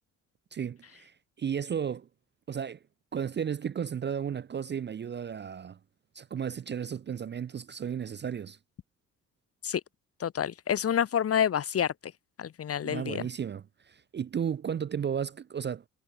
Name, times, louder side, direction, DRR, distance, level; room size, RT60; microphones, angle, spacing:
voice 1, 0.5-2.1 2.5-2.8 3.1-5.8 6.1-8.6 12.8-15.8, right 8 dB, 30° right, 0.5 m, -34 dB
voice 2, 10.2-11.9 12.4-13.2, left 9 dB, 35° left, 0.7 m, -28 dB
hypercardioid pair, 45°, 39 cm